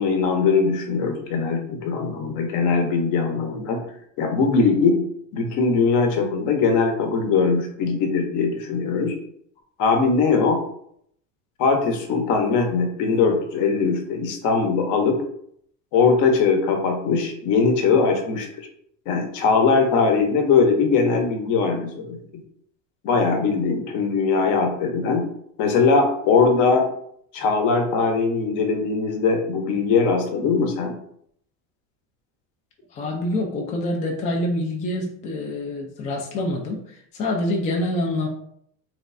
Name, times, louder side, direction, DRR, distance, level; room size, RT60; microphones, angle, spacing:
voice 1, 0.0-3.8 4.2-5.1 5.3-9.2 9.8-10.6 11.6-15.2 15.9-18.5 19.1-22.2 23.0-25.3 25.6-26.9 27.3-30.9, left 4 dB, 50° left, 5 dB, 0.8 m, -20 dB
voice 2, 32.9-38.3, left 1 dB, 20° left, 1 dB, 0.3 m, -26 dB
3.3 x 3.1 x 2.5 m, 0.68 s
supercardioid pair, 130°, 39 cm